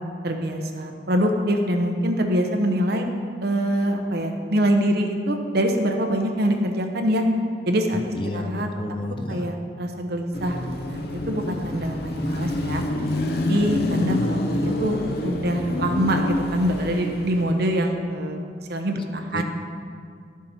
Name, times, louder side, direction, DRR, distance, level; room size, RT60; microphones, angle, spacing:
voice 1, 0.2-3.1 3.4-7.2 7.7-8.7 9.3-10.6 10.9-12.8 13.5-18.4 18.7-19.4, equal, 55° right, 4 dB, 0.9 m, -24 dB
voice 2, 7.9-9.4 19.3-19.4, left 1 dB, 30° left, 5 dB, 0.6 m, -31 dB
Car passing by / Traffic noise roadway noise / Engine, 10.3-17.7, left 1 dB, 55° left, 0.8 m, -27 dB
11.5 x 7.3 x 4.3 m, 2.3 s
head